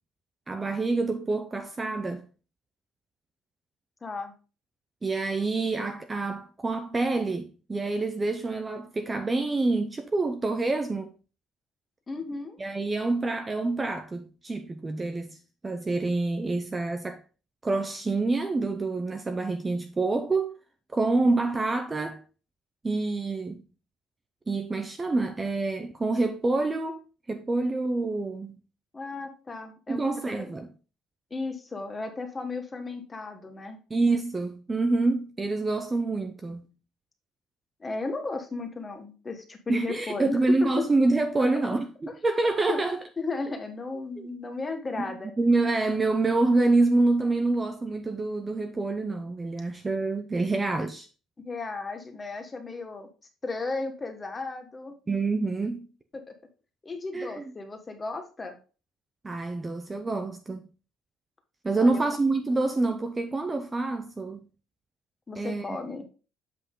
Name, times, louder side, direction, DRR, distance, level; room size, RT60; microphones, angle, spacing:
voice 1, 0.5-2.3 5.0-11.1 12.6-15.4 15.6-17.2 17.6-20.6 20.9-22.2 22.8-23.6 24.5-27.0 27.3-28.6 29.9-30.7 33.9-36.7 39.7-43.0 44.2-44.3 45.4-51.1 55.1-55.9 57.1-57.4 59.2-60.7 61.6-64.5 65.4-65.8, right 3 dB, 15° right, 0.6 m, -27 dB
voice 2, 4.0-4.3 12.1-12.6 28.9-30.5 31.3-33.8 37.8-40.4 41.4-41.6 42.7-42.8 43.2-45.3 51.4-53.1 53.4-54.9 56.8-58.6 61.7-62.0 65.3-66.1, left 3 dB, 20° left, 1.3 m, -35 dB
7.6 x 5.7 x 3.8 m
cardioid pair, 155°, 0 cm